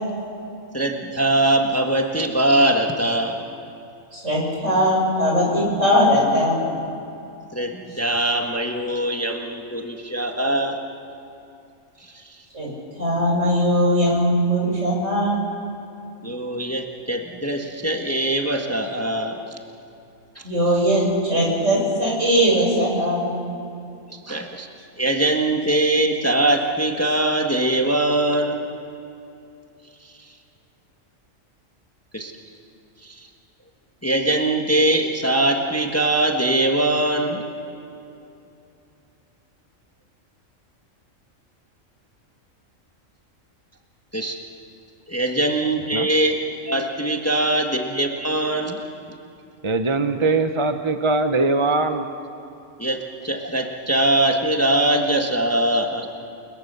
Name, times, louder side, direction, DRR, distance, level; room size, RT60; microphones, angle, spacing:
voice 1, 0.7-3.4 7.5-10.8 12.0-12.4 16.2-19.4 20.3-20.4 20.7-21.0 24.1-24.7 25.0-28.6 30.0-30.3 32.1-32.3 33.0-33.3 34.0-37.4 44.1-44.4 45.1-46.4 46.6-48.8 52.8-56.1, right 1 dB, 10° left, 2 dB, 1.5 m, -22 dB
voice 2, 4.1-6.6 12.5-12.7 13.0-15.4 20.4-23.3, equal, 60° right, -2 dB, 6.4 m, -20 dB
voice 3, 49.6-52.1, right 3 dB, 25° right, 7 dB, 0.8 m, -21 dB
29.5 x 21.5 x 6.8 m, 2.7 s
omnidirectional pair, 1.4 m